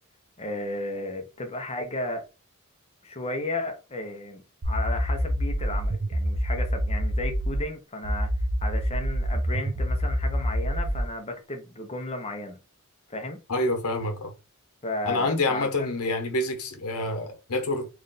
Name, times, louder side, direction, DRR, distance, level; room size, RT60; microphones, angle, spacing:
voice 1, 0.4-2.2 3.0-8.3 8.6-12.6 13.1-13.4 14.8-15.9, left 2 dB, 30° left, 0.8 m, -34 dB
sound 1, 4.6-7.6 8.0-11.1, equal, 60° right, 0.8 m, -27 dB
voice 2, 13.5-14.3 15.0-17.9, left 2 dB, 85° left, 1.1 m, -27 dB
3.2 x 2.5 x 4.0 m
head